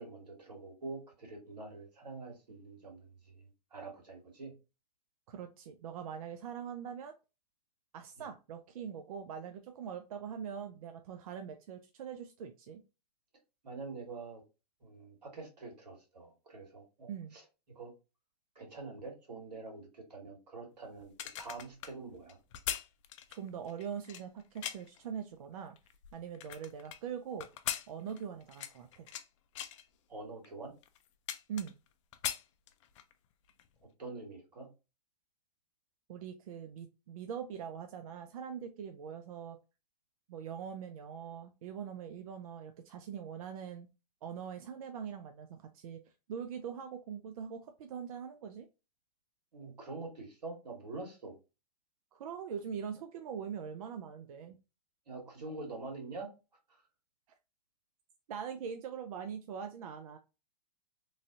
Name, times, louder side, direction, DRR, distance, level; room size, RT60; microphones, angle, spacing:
voice 1, 0.0-4.5 8.2-8.3 13.6-14.4 14.8-17.4 17.7-17.9 18.5-22.4 30.1-30.7 34.0-34.7 49.5-51.3 55.1-56.3 56.7-56.8, right 3 dB, 90° right, 1.6 m, -45 dB
voice 2, 5.3-7.1 7.9-12.8 17.1-17.4 23.3-25.8 26.1-27.5 27.9-29.1 31.5-31.7 36.1-39.6 40.3-43.9 44.2-46.0 46.3-48.7 52.1-54.6 58.3-60.2, right 7 dB, 60° right, 0.5 m, -42 dB
sound 1, 21.0-25.0 25.6-27.0 27.4-29.3 29.5-29.8 30.4-30.5 30.8-31.9 32.1-33.1 33.5-33.7, left 11 dB, 50° left, 0.4 m, -40 dB
3.1 x 2.6 x 2.5 m
hypercardioid pair, 125°, 21 cm